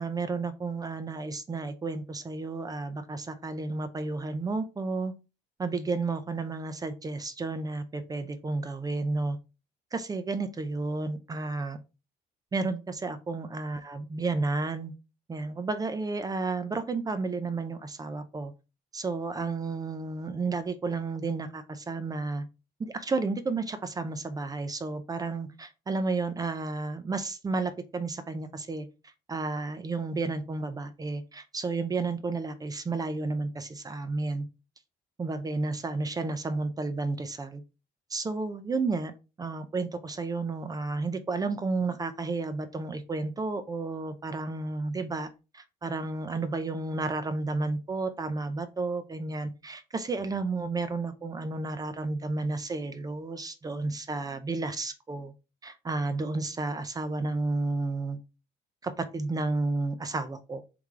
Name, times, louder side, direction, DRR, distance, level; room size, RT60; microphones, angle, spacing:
voice 1, 0.0-5.1 5.6-9.4 9.9-11.8 12.5-14.9 15.3-18.5 18.9-22.5 22.8-28.9 29.3-34.5 35.2-37.6 38.1-39.1 39.4-45.3 45.5-55.3 55.6-58.2 58.8-60.6, right 3 dB, 20° right, 11 dB, 0.5 m, -32 dB
3.4 x 3.2 x 3.6 m, 0.30 s
cardioid pair, 110°, 17 cm